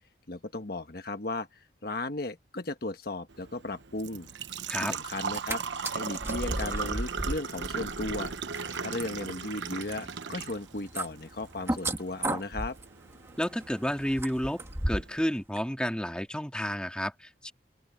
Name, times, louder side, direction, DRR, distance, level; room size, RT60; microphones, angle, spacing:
voice 1, 0.3-4.3 4.8-5.6 5.9-8.3 8.8-12.8, left 2 dB, 55° left, 1.3 m, -36 dB
Engine / Trickle dribble / Fill (with liquid), 3.3-15.3, right 5 dB, 80° right, 1.0 m, -38 dB
sound 1, 5.2-5.6 5.8-15.2 15.6-15.7, right 1 dB, 15° right, 1.5 m, -36 dB
voice 2, 13.4-17.5, equal, 5° left, 2.3 m, -31 dB
open air
head